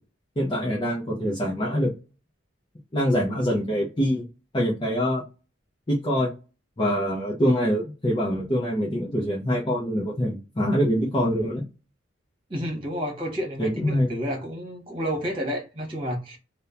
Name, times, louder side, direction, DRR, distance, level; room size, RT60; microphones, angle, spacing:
voice 1, 0.4-1.9 2.9-4.2 4.5-5.2 5.9-6.3 6.8-11.7 13.6-14.1, equal, 25° left, 0.5 m, -24 dB
voice 2, 12.5-16.4, equal, 25° right, 1.2 m, -30 dB
2.8 x 2.1 x 2.4 m
head